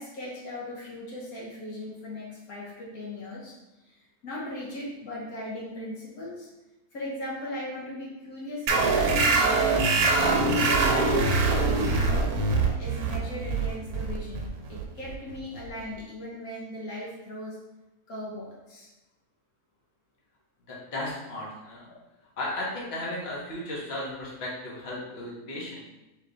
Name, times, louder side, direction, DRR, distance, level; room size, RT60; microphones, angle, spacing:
voice 1, 0.0-6.5 6.9-10.0 10.5-12.3 12.8-17.6 18.1-18.9, left 1 dB, 70° left, -4 dB, 1.4 m, -38 dB
sound 1, 8.7-15.8, right 3 dB, 80° right, 1.2 m, -24 dB
voice 2, 20.7-21.9 22.4-25.8, left 1 dB, 45° left, -5 dB, 1.3 m, -35 dB
3.5 x 3.5 x 3.9 m, 1.0 s
omnidirectional pair, 1.6 m